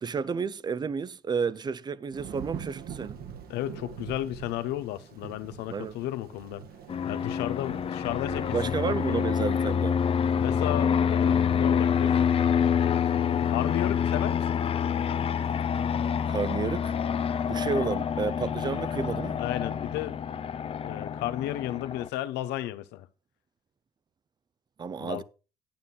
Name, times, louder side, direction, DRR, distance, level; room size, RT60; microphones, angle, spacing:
voice 1, 0.0-3.2 5.7-6.0 8.5-10.0 16.3-16.9 17.5-19.4 24.8-25.2, right 5 dB, 25° right, 0.4 m, -31 dB
Thunder / Rain, 2.1-17.7, right 8 dB, 65° right, 1.3 m, -47 dB
voice 2, 3.5-6.6 7.0-9.3 10.3-12.3 13.5-14.6 19.4-20.2 20.8-23.1 25.0-25.2, left 14 dB, 90° left, 0.8 m, -33 dB
Fixed-wing aircraft airplane, 6.9-22.1, left 7 dB, 35° left, 0.5 m, -27 dB
9.4 x 8.8 x 3.8 m
cardioid pair, 110°, 17 cm